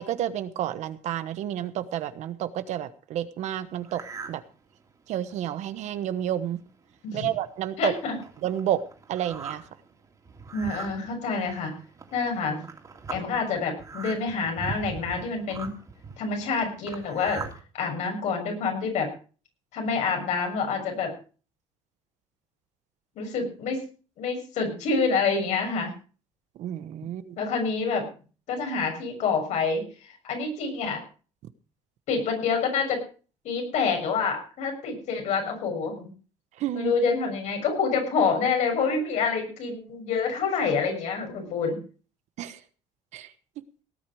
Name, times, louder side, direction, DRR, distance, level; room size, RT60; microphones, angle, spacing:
voice 1, 0.0-4.0 4.3-4.4 5.1-6.6 7.1-7.9 8.4-8.8 9.1-9.6 26.6-27.4 36.6-36.9 42.4-42.6 43.1-43.3, right 11 dB, 70° right, 12 dB, 1.2 m, -30 dB
sound 1, 3.9-4.4 4.9-5.0 5.6-5.7 6.0-6.2 6.9-7.0 7.4-17.6, right 4 dB, 25° right, 3.0 m, -41 dB
voice 2, 7.8-8.1 10.5-11.8 12.1-12.6 13.1-15.7 16.2-17.4 17.7-19.1 19.7-21.1 23.1-23.8 24.2-25.9 27.4-28.1 28.5-31.0 32.1-33.0 33.4-36.1 36.7-41.8, left 5 dB, 70° left, 3 dB, 6.7 m, -27 dB
18.0 x 9.5 x 4.9 m, 0.38 s
cardioid pair, 135°, 12 cm